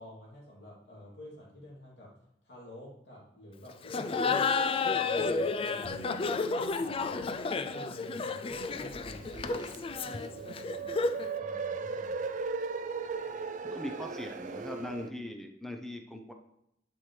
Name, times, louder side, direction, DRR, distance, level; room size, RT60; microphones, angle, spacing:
voice 1, 0.0-2.1 2.4-6.0 6.5-12.3, left 1 dB, 70° left, -5 dB, 3.0 m, -50 dB
Laughter, 3.8-11.3, left 4 dB, 30° left, 0.3 m, -31 dB
sound 1, 5.8-12.1, right 7 dB, 50° left, 0.8 m, -54 dB
sound 2, 8.5-15.1, right 4 dB, 45° right, 0.5 m, -38 dB
voice 2, 13.6-16.3, left 1 dB, ahead, 4 dB, 0.7 m, -40 dB
10.5 x 6.0 x 3.3 m, 0.80 s
head